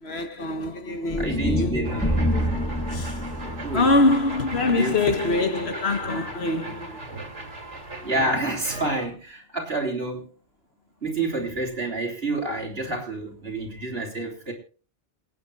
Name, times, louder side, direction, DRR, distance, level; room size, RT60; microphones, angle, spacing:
voice 1, 0.0-1.8 2.9-3.2 3.7-7.0, left 2 dB, 65° left, 1.5 m, -24 dB
sound 1, 1.1-5.3, left 1 dB, 5° left, 6.7 m, -28 dB
voice 2, 1.2-2.2 3.4-3.9 4.7-5.0 8.0-10.3 11.0-14.5, right 2 dB, 55° right, 3.9 m, -29 dB
sound 2, 1.8-9.1, right 2 dB, 85° right, 2.9 m, -37 dB
28.0 x 9.5 x 2.5 m
omnidirectional pair, 1.2 m